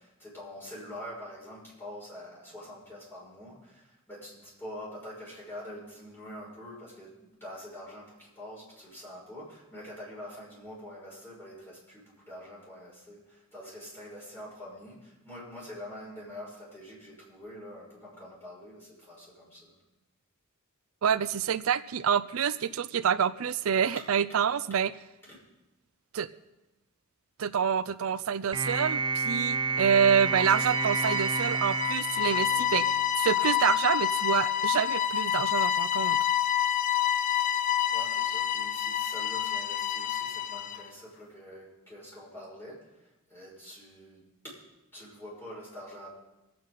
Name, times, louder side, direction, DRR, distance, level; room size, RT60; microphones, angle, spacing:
voice 1, 0.0-19.8 25.3-25.4 37.9-44.6 44.9-46.1, left 1 dB, 10° left, -7 dB, 6.2 m, -45 dB
voice 2, 21.0-24.9 26.1-26.3 27.4-32.8 33.2-36.2, right 7 dB, 70° right, 14 dB, 0.4 m, -27 dB
sound 1, 28.5-33.0, right 4 dB, 20° right, 0.4 m, -30 dB
sound 2, 30.1-40.9, left 10 dB, 35° left, 0.4 m, -28 dB
24.5 x 8.5 x 4.0 m, 1.0 s
head